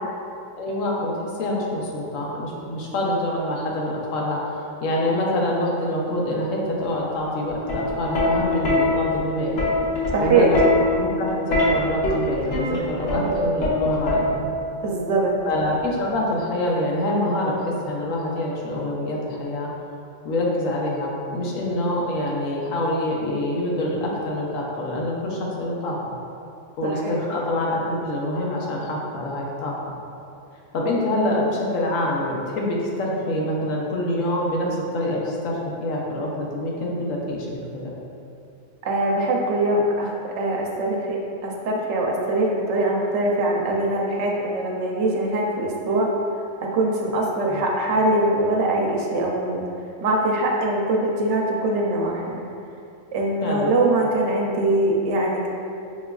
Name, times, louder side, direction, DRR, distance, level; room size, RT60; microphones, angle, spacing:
voice 1, 0.6-9.6 10.2-10.6 10.9-14.4 15.4-19.7 20.2-26.1 26.8-29.9 30.7-37.9 47.5-47.6 53.4-53.7, left 1 dB, 90° left, -3 dB, 1.1 m, -26 dB
Plucked string instrument, 7.5-14.7 15.8-16.1, left 2 dB, 65° left, 1.1 m, -23 dB
voice 2, 10.1-10.5 13.2-13.5 14.8-15.3 26.8-27.2 38.8-46.1 46.7-49.6 50.0-52.4 53.1-55.5, right 2 dB, 70° right, -1 dB, 0.8 m, -22 dB
5.8 x 2.3 x 2.3 m, 2.5 s
omnidirectional pair, 1.3 m